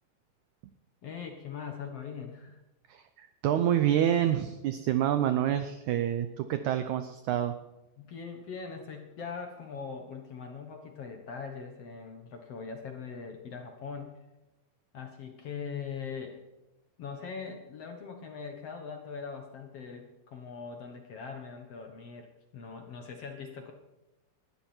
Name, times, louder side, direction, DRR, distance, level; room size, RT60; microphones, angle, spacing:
voice 1, 1.0-2.6 8.0-14.2 14.9-16.4 17.0-23.7, left 5 dB, 55° left, 4 dB, 1.8 m, -41 dB
voice 2, 2.9-7.5, right 10 dB, 85° right, 9 dB, 1.6 m, -27 dB
20.0 x 13.0 x 4.5 m, 1.0 s
omnidirectional pair, 4.3 m